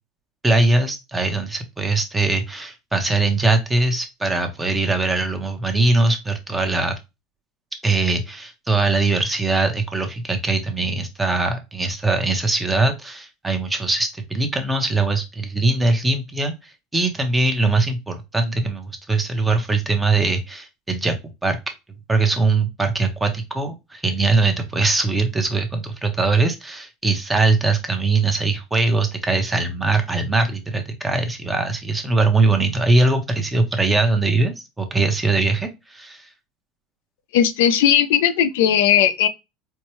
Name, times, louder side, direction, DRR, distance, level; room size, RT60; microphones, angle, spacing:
voice 1, 0.4-6.9 7.8-21.2 21.4-21.6 22.1-36.3, right 3 dB, 10° right, 0.8 m, -21 dB
voice 2, 37.3-39.3, left 9 dB, 85° left, 0.4 m, -17 dB
4.4 x 2.1 x 3.0 m
supercardioid pair, 130°, 0 cm